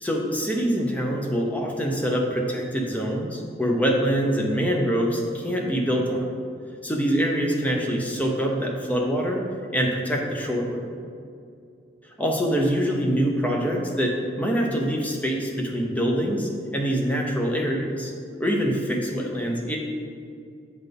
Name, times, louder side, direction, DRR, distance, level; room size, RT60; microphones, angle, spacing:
voice 1, 0.0-6.3 6.8-9.4 9.7-10.8 12.2-18.1 18.4-19.8, equal, 10° left, -1 dB, 0.8 m, -25 dB
8.0 x 4.0 x 5.3 m, 2.3 s
head